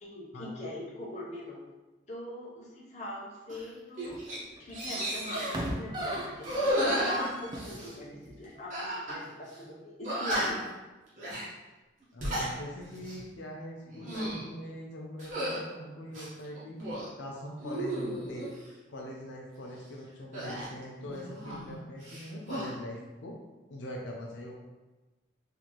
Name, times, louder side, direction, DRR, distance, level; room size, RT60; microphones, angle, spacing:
voice 1, 0.0-1.6 2.1-4.2 4.6-10.7, left 1 dB, 35° left, -4 dB, 0.8 m, -42 dB
sound 1, 3.5-3.7 4.0-4.4 4.7-5.6 6.4-7.9 8.7-9.2 9.5-9.6 10.0-10.7 11.2-11.5 12.0-12.5 13.0-13.2 13.9-14.5 15.2-15.6 16.1-17.1 17.6-18.5 20.3-21.8 22.0-22.7, equal, 40° right, 1.0 m, -33 dB
sound 2, 4.0-4.3 4.6-7.8 8.2-8.3, right 1 dB, 25° right, 0.4 m, -37 dB
voice 2, 12.1-16.8 17.2-18.5 18.9-23.3 23.7-24.5, equal, 75° left, -2 dB, 0.6 m, -42 dB
4.2 x 2.7 x 3.0 m, 1.1 s
head